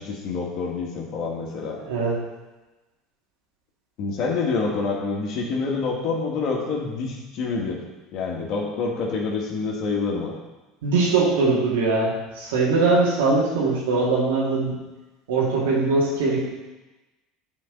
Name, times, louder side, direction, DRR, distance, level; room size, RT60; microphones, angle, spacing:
voice 1, 0.0-1.8 4.0-7.8 8.1-10.3, left 4 dB, 60° left, -1 dB, 1.6 m, -27 dB
voice 2, 1.8-2.2 10.1-10.2 10.8-14.7 15.3-16.5, right 3 dB, 85° right, -4 dB, 2.2 m, -21 dB
9.1 x 4.2 x 4.0 m, 1.1 s
hypercardioid pair, 90°, 0 cm